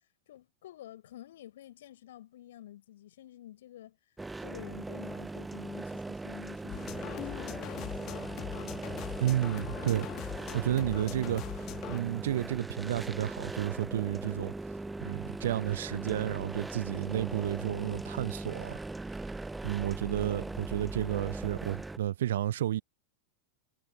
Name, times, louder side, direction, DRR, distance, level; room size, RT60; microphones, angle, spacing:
voice 1, 0.3-4.0 4.4-8.8, left 13 dB, 60° left, 7.7 m, -50 dB
sound 1, 4.2-22.0, right 2 dB, 10° right, 1.0 m, -39 dB
sound 2, 6.7-12.0, left 16 dB, 35° left, 1.5 m, -41 dB
voice 2, 9.2-10.1 10.5-11.4 11.9-14.5 15.0-18.8 19.6-22.8, right 12 dB, 60° right, 0.4 m, -31 dB
figure-of-eight pair, 90°, 0 cm